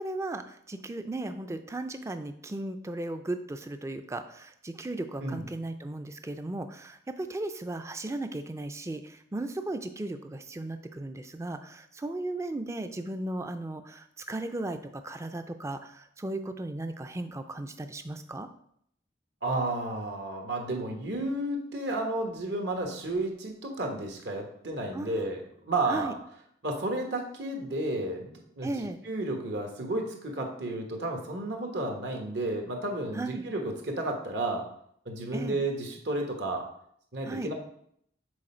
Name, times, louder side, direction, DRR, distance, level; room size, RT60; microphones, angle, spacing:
voice 1, 0.0-18.5 24.9-25.3 25.9-26.1 28.6-29.0 33.1-33.5 35.3-35.6 37.2-37.5, right 2 dB, 15° right, 8 dB, 0.4 m, -36 dB
voice 2, 19.4-26.2 26.6-28.7 29.0-34.6 35.0-36.7 37.1-37.5, right 2 dB, 70° right, 2 dB, 1.2 m, -32 dB
6.4 x 4.1 x 4.3 m, 0.69 s
head